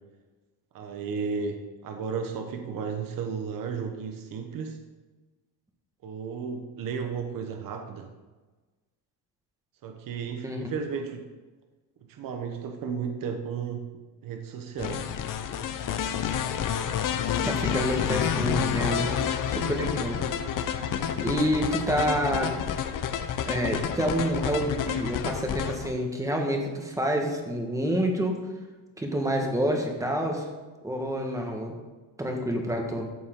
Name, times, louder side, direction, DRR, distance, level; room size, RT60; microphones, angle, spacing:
voice 1, 0.7-4.8 6.0-8.1 9.8-11.3 12.1-13.9 14.2-15.1, right 6 dB, 50° right, 5 dB, 1.2 m, -34 dB
sound 1, 14.8-25.9, left 8 dB, 45° left, 0.8 m, -29 dB
voice 2, 17.4-19.1 19.5-20.3 21.2-22.5 23.4-28.4 29.0-30.5 30.8-31.7 32.2-33.1, equal, 5° right, 2 dB, 1.5 m, -28 dB
14.0 x 7.1 x 3.8 m, 1.3 s
cardioid pair, 155°, 44 cm